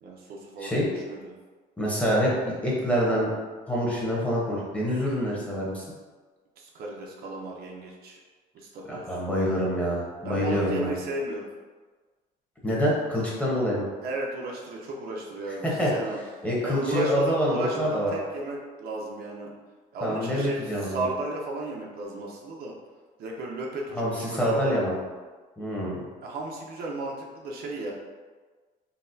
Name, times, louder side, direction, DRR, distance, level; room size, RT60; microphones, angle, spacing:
voice 1, 0.0-1.3 6.6-8.2 8.5-9.0 10.2-11.5 14.0-16.2 16.6-19.5 19.9-22.7 23.2-24.8 26.2-27.9, right 2 dB, 65° right, -1 dB, 0.6 m, -34 dB
voice 2, 0.6-0.9 1.8-3.3 3.7-5.8 8.9-10.9 12.6-13.9 15.6-15.9 16.4-18.1 20.0-21.1 23.9-24.9 25.6-26.0, equal, 5° left, -5 dB, 0.9 m, -26 dB
3.9 x 2.1 x 2.6 m, 1.4 s
cardioid pair, 110°, 17 cm